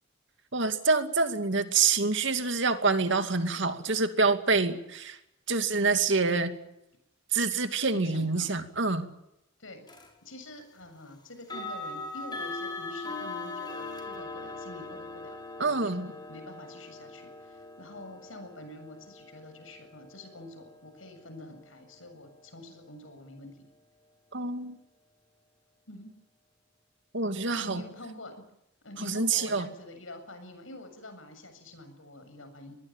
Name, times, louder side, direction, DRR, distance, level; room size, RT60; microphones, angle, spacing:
voice 1, 0.5-5.2 5.5-6.5 7.3-9.1 15.6-16.1 24.3-24.8 27.1-27.8 29.0-29.7, right 4 dB, 65° right, 8 dB, 2.5 m, -26 dB
voice 2, 7.9-8.5 9.6-10.0 10.2-23.5 25.9-26.1 27.6-28.3 28.8-32.8, left 1 dB, 90° left, 7 dB, 7.5 m, -47 dB
sound 1, 9.9-10.1 11.4-22.3, left 3 dB, 20° left, 6.0 m, -41 dB
24.5 x 20.5 x 9.0 m, 0.83 s
head